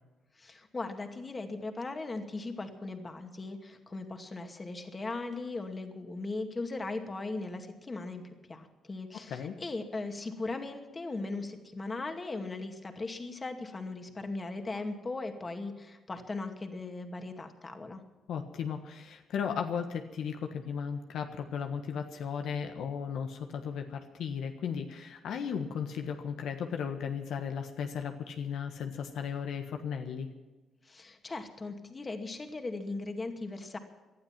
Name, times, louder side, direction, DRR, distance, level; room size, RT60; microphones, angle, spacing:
voice 1, 0.4-8.2 8.5-18.0 30.9-33.8, left 3 dB, 25° left, 5 dB, 2.3 m, -38 dB
voice 2, 9.1-9.6 18.3-30.3, left 7 dB, 75° left, 5 dB, 1.4 m, -36 dB
19.5 x 12.0 x 5.9 m, 1.2 s
cardioid pair, 90°, 0 cm